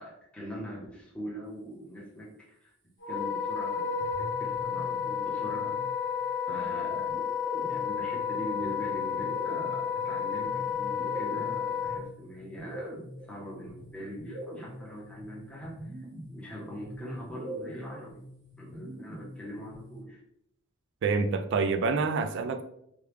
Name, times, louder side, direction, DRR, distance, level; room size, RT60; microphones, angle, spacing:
voice 1, 0.0-2.7 3.1-5.7 6.5-7.1 7.7-18.2 18.6-20.2, equal, 5° left, -5 dB, 0.8 m, -42 dB
Wind instrument woodwind instrument, 3.0-12.0, left 7 dB, 60° left, 0.7 m, -31 dB
sound 1, 4.0-6.1 7.1-20.0, right 1 dB, 35° right, 0.8 m, -44 dB
voice 2, 21.0-22.6, right 4 dB, 55° right, 8 dB, 0.3 m, -27 dB
3.0 x 2.3 x 3.3 m, 0.76 s
head